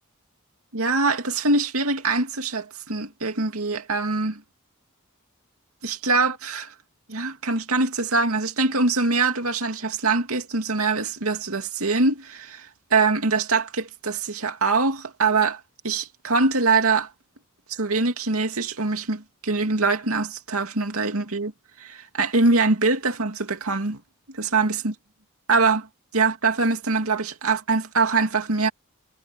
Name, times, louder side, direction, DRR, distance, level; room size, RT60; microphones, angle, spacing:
voice 1, 0.7-4.4 5.8-6.7 7.1-15.6 15.8-17.1 17.7-21.5 21.8-24.0 24.3-24.9 25.5-25.9 26.1-28.7, right 3 dB, 85° right, 2.5 m, -23 dB
head